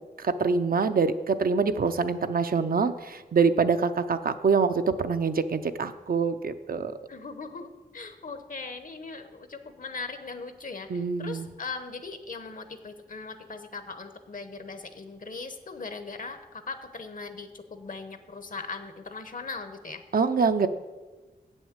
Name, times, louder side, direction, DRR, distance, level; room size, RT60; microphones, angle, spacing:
voice 1, 0.2-6.9 10.9-11.5 20.1-20.7, right 5 dB, 65° right, 9 dB, 0.6 m, -25 dB
voice 2, 7.1-20.0, left 4 dB, 55° left, 9 dB, 1.0 m, -39 dB
8.1 x 6.3 x 8.0 m, 1.2 s
wide cardioid pair, 85°, 16 cm